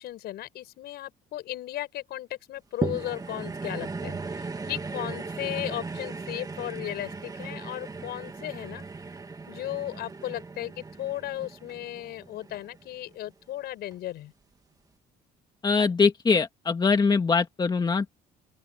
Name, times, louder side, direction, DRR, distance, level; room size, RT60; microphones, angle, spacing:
voice 1, 0.0-8.8 9.5-14.3, left 14 dB, 75° left, 6.3 m, -36 dB
sound 1, 2.8-13.3 13.9-14.0, right 4 dB, 20° right, 2.0 m, -37 dB
voice 2, 15.6-18.1, left 5 dB, 25° left, 1.9 m, -23 dB
open air
cardioid pair, 110°, 17 cm